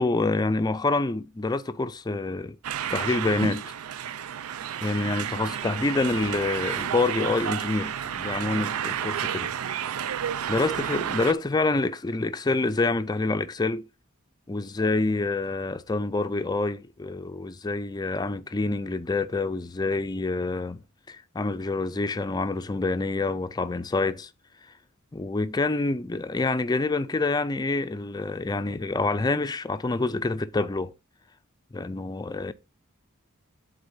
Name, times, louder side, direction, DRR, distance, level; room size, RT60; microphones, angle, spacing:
voice 1, 0.0-2.6 2.9-3.7 4.8-9.5 10.5-13.9 14.5-20.8 21.1-24.3 25.1-30.9 31.7-32.5, left 3 dB, 20° left, 0.4 m, -27 dB
sound 1, 2.6-11.3, right 9 dB, 85° right, 0.4 m, -31 dB
12.0 x 4.0 x 2.7 m
head